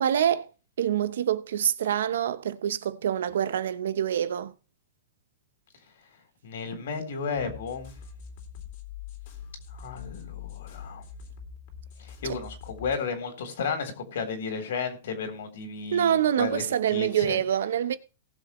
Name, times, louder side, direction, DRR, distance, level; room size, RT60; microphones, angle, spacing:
voice 1, 0.0-0.5 0.8-4.5 15.9-18.0, right 9 dB, 75° right, 0.9 m, -26 dB
voice 2, 6.4-7.9 9.7-11.0 12.0-16.6 16.9-17.4, left 5 dB, 65° left, 3.7 m, -33 dB
sound 1, 7.3-13.0, left 7 dB, 40° left, 2.8 m, -43 dB
19.0 x 7.2 x 3.2 m
supercardioid pair, 170°, 0 cm